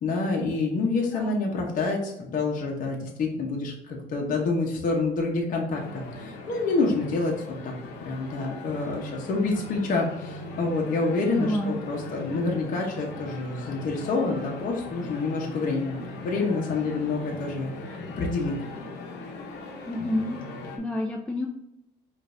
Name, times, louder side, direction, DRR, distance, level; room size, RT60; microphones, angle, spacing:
voice 1, 0.0-7.3 7.6-7.7 8.0-15.9 16.2-17.7 18.1-18.5, left 3 dB, 50° left, -1 dB, 0.9 m, -27 dB
sound 1, 5.7-20.8, left 2 dB, 85° left, 0.9 m, -40 dB
voice 2, 11.3-11.8 19.8-20.4 20.8-21.5, left 1 dB, 5° left, 1 dB, 0.4 m, -29 dB
5.1 x 2.6 x 2.6 m, 0.86 s
cardioid pair, 110°, 17 cm